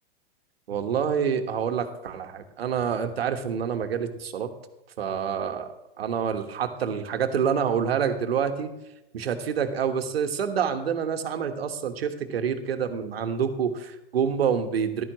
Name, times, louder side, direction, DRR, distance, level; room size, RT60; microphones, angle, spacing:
voice 1, 0.7-4.5 5.0-5.7 6.0-8.7 9.1-15.0, right 7 dB, 80° right, 7 dB, 1.4 m, -27 dB
14.0 x 12.0 x 3.1 m, 0.91 s
hypercardioid pair, 120°, 30 cm